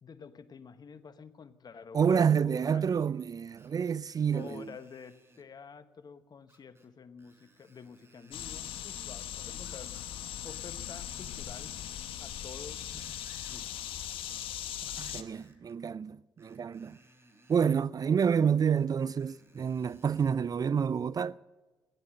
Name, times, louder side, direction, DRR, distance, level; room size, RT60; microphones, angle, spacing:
voice 1, 0.0-2.8 4.3-11.7 12.2-12.8 13.4-13.8, left 6 dB, 50° left, 1.2 m, -49 dB
voice 2, 1.9-4.7 14.8-17.0 17.5-21.4, right 7 dB, 45° right, 0.4 m, -28 dB
Screech, 3.6-5.5 6.5-6.9 7.2-8.9 9.6-10.1 10.4-12.0 12.6-13.7 14.8-15.8 16.4-17.7 18.8-20.4 21.0-21.1, right 1 dB, 30° right, 3.8 m, -62 dB
sound 1, 8.3-15.2, left 11 dB, 80° left, 0.9 m, -39 dB
16.5 x 11.0 x 7.6 m
supercardioid pair, 50°, 9 cm